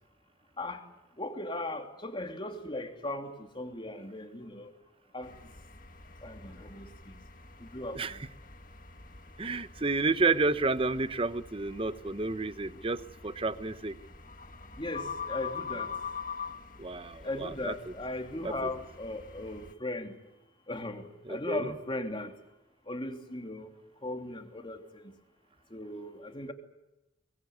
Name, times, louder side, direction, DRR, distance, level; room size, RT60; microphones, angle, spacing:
voice 1, 1.2-4.7 5.1-5.3 6.2-7.2 7.6-8.2 14.8-16.0 17.2-20.2 20.7-22.3 22.9-23.7 24.0-25.1 25.7-26.5, left 1 dB, 30° left, 4 dB, 3.0 m, -38 dB
sound 1, 5.2-19.7, left 5 dB, 50° left, 1.8 m, -45 dB
voice 2, 9.4-14.0 16.8-17.7 18.4-18.7 21.3-21.7, right 3 dB, 30° right, 13 dB, 1.0 m, -30 dB
24.0 x 21.0 x 9.4 m, 0.99 s
head